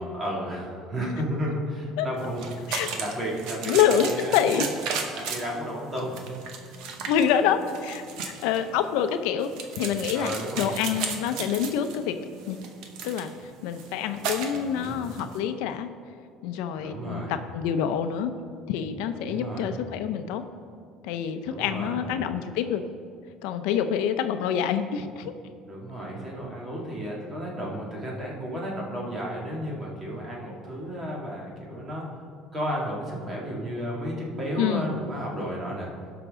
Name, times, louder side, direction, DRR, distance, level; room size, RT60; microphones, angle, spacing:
voice 1, 0.0-4.6 4.9-6.2 8.5-8.6 10.1-10.7 14.5-15.0 16.8-17.3 19.2-19.7 21.5-22.0 25.7-32.1 32.5-35.9, equal, 25° right, -2 dB, 2.2 m, -33 dB
sound 1, 2.2-15.4, right 5 dB, 70° right, 1.1 m, -35 dB
voice 2, 3.7-4.6 7.0-9.5 9.7-12.2 12.5-12.6 13.0-15.9 16.4-18.3 18.7-20.4 21.0-22.9 23.4-25.3 34.6-34.9, left 8 dB, 85° left, 9 dB, 0.6 m, -26 dB
17.0 x 5.9 x 3.7 m, 2.2 s
cardioid pair, 150°, 0 cm